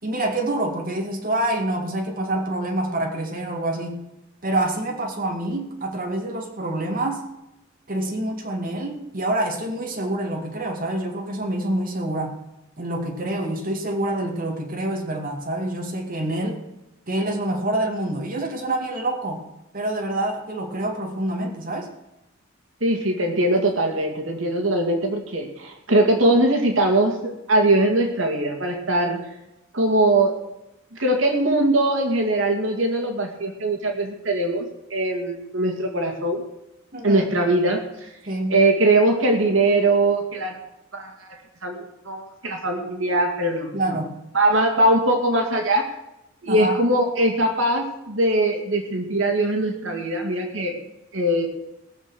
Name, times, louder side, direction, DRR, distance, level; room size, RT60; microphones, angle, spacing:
voice 1, 0.0-4.0 4.4-7.2 7.9-12.3 12.8-16.6 17.1-19.4 19.7-21.9 36.9-37.2 38.3-38.6 43.7-44.1 46.5-46.8, right 1 dB, 45° right, 1 dB, 2.4 m, -26 dB
voice 2, 22.8-29.2 29.7-30.4 30.9-34.6 34.9-36.4 37.0-38.1 38.5-40.6 40.9-44.0 44.3-45.9 46.4-50.8 51.1-51.5, right 1 dB, 80° right, 3 dB, 2.3 m, -21 dB
20.5 x 6.9 x 6.3 m, 0.92 s
head